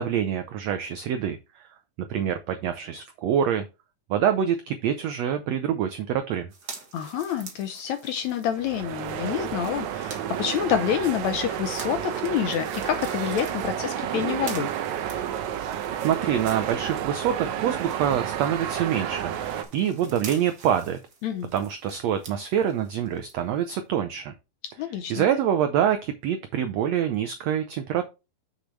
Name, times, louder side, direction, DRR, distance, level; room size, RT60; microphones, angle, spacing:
voice 1, 0.0-1.6 2.1-3.6 4.1-6.5 16.0-21.0 21.5-24.3 25.1-28.1, right 9 dB, 90° right, 1.5 m, -26 dB
sound 1, 6.5-17.3 17.6-23.3 23.8-23.9, right 4 dB, 40° right, 1.5 m, -46 dB
voice 2, 6.9-14.7 21.2-21.5 24.8-25.3, left 9 dB, 75° left, 1.7 m, -28 dB
sound 2, 8.5-19.6, right 10 dB, 70° right, 1.9 m, -31 dB
8.0 x 6.5 x 3.2 m
omnidirectional pair, 3.9 m